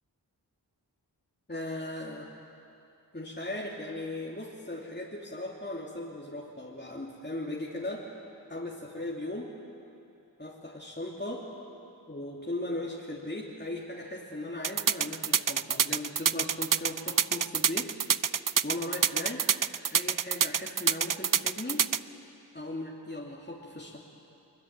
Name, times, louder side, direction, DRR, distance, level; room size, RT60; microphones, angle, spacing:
voice 1, 1.5-2.3 3.1-8.1 8.5-9.5 10.4-11.5 12.1-17.9 18.6-19.5 19.9-21.8 22.5-24.0, left 1 dB, 25° left, -4 dB, 3.0 m, -38 dB
sound 1, 14.6-22.0, right 8 dB, 50° right, 0.6 m, -26 dB
23.0 x 22.5 x 9.1 m, 2.7 s
cardioid pair, 40°, 42 cm